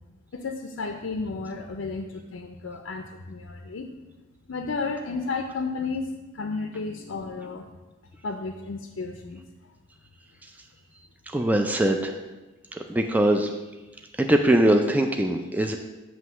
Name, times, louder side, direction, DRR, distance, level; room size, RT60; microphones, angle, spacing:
voice 1, 0.3-3.9 4.5-7.7 8.2-9.4, left 4 dB, 90° left, 4 dB, 0.5 m, -32 dB
voice 2, 11.3-12.1 12.9-13.5 14.2-15.8, right 1 dB, 10° right, 4 dB, 0.3 m, -21 dB
7.6 x 3.1 x 6.1 m, 1.1 s
head